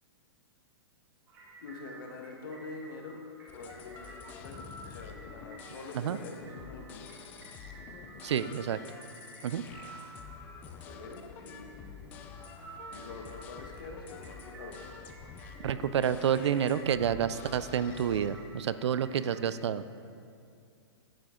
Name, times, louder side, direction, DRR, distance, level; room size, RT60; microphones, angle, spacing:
sound 1, 1.3-19.4, right 2 dB, 15° right, 0.8 m, -52 dB
voice 1, 1.6-7.0 8.5-8.6 10.6-12.2 12.9-14.9, left 3 dB, 50° left, 2 dB, 1.4 m, -46 dB
sound 2, 3.5-18.3, left 6 dB, 10° left, 0.3 m, -48 dB
voice 2, 8.2-8.8 9.4-9.6 15.6-19.8, right 8 dB, 80° right, 14 dB, 0.4 m, -29 dB
10.5 x 9.3 x 3.8 m, 2.3 s
hypercardioid pair, 170°, 14 cm